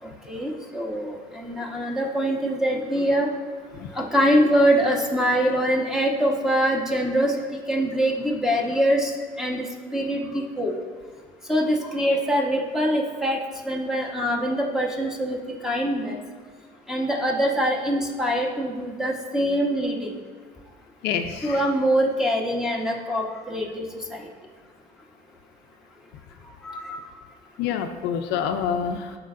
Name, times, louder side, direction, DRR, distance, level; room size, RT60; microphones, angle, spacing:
voice 1, 0.0-3.3 3.9-9.1 9.4-9.7 9.9-10.7 11.5-13.4 13.6-15.4 15.6-16.2 16.9-20.1 21.4-23.8 24.1-24.3 26.6-27.0, equal, 5° right, -1 dB, 1.2 m, -24 dB
voice 2, 21.0-21.6 27.6-29.2, left 8 dB, 90° left, 7 dB, 0.5 m, -27 dB
13.5 x 4.5 x 2.5 m, 1.5 s
cardioid pair, 110°, 17 cm